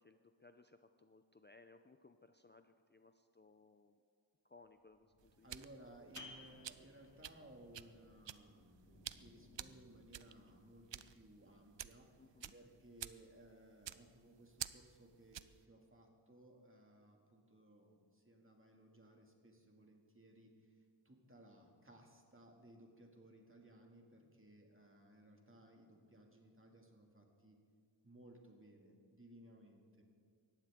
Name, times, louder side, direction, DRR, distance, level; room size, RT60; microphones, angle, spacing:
voice 1, 0.0-4.0 4.4-5.9 12.2-12.5, left 3 dB, 25° left, 8 dB, 0.5 m, -64 dB
sound 1, 4.6-13.0, left 2 dB, 90° left, 4.9 m, -70 dB
sound 2, 5.2-15.6, right 10 dB, 80° right, 0.5 m, -51 dB
voice 2, 5.4-27.6 28.0-30.0, right 1 dB, 30° right, 1 dB, 2.3 m, -61 dB
sound 3, 6.2-11.5, left 2 dB, 40° left, 2.3 m, -61 dB
19.0 x 14.5 x 3.7 m, 2.1 s
wide cardioid pair, 65°, 43 cm